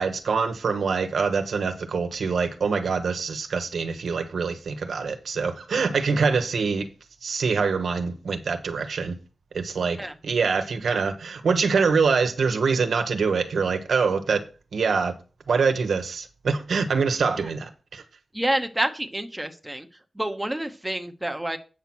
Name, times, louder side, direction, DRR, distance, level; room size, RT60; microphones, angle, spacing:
voice 1, 0.0-6.9 7.2-9.2 9.5-14.4 14.7-15.1 15.5-18.0, right 5 dB, 80° right, 1.1 m, -24 dB
voice 2, 18.3-19.9 20.1-21.6, right 1 dB, 10° right, 0.9 m, -28 dB
8.2 x 5.8 x 6.1 m
wide cardioid pair, 135°, 0 cm